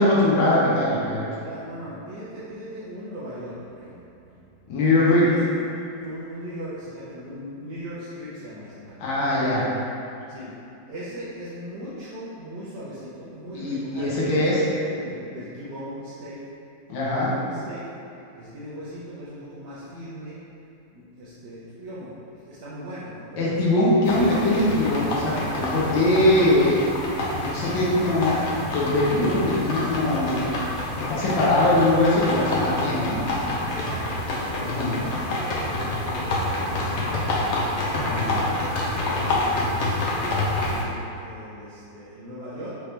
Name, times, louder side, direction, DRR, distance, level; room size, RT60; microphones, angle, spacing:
voice 1, 0.0-1.3 4.7-5.3 9.0-9.7 13.5-14.6 16.9-17.3 23.4-26.9 27.3-30.5 31.0-33.5 34.6-34.9 38.1-38.4, left 1 dB, 90° left, -7 dB, 1.6 m, -22 dB
voice 2, 1.4-4.4 5.3-5.4 6.0-9.3 10.3-10.5 10.9-14.7 15.0-16.4 17.1-17.9 18.4-20.4 20.9-23.6 24.0-24.3 33.7-35.7 36.0-37.5 37.8-42.7, equal, 70° right, -10 dB, 1.3 m, -38 dB
sound 1, 24.0-40.8, left 2 dB, 65° left, 0.7 m, -27 dB
5.1 x 3.0 x 3.3 m, 2.7 s
omnidirectional pair, 2.0 m